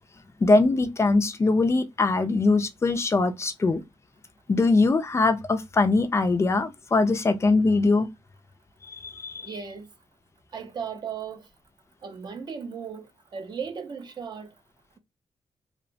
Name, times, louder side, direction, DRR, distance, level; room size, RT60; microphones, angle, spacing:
voice 1, 0.4-3.8 4.5-8.1 8.9-9.5, left 3 dB, 25° left, 0.3 m, -22 dB
voice 2, 9.4-9.9 10.5-11.4 12.0-14.5, right 6 dB, 40° right, 0.5 m, -36 dB
2.8 x 2.0 x 2.5 m
wide cardioid pair, 155°, 11 cm